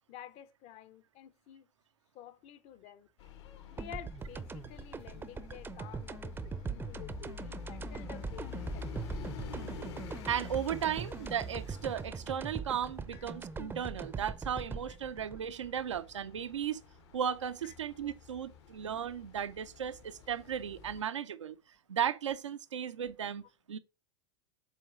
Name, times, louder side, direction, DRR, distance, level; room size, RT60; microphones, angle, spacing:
voice 1, 0.1-1.7 2.1-3.1 3.7-9.1 10.9-11.0 13.1-13.2 17.6-17.7, left 11 dB, 45° left, 0.7 m, -51 dB
sound 1, 3.2-21.0, left 6 dB, 65° left, 1.3 m, -48 dB
sound 2, 3.8-16.6, right 5 dB, 15° right, 0.5 m, -42 dB
voice 2, 10.3-16.8 17.1-21.6 21.9-23.4 23.7-23.8, right 9 dB, 85° right, 0.6 m, -35 dB
7.5 x 3.1 x 4.9 m
hypercardioid pair, 100°, 15 cm